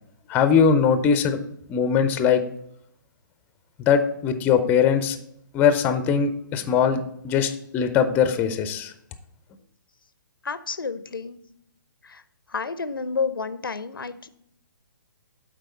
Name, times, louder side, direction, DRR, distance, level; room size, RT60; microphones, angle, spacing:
voice 1, 0.3-1.4 1.7-2.4 3.8-5.2 5.5-8.9, left 7 dB, 15° left, 10 dB, 0.4 m, -21 dB
voice 2, 10.4-11.4 12.0-12.2 12.5-14.3, left 5 dB, 85° left, 14 dB, 0.5 m, -30 dB
7.7 x 4.7 x 4.3 m, 0.72 s
figure-of-eight pair, 135°, 11 cm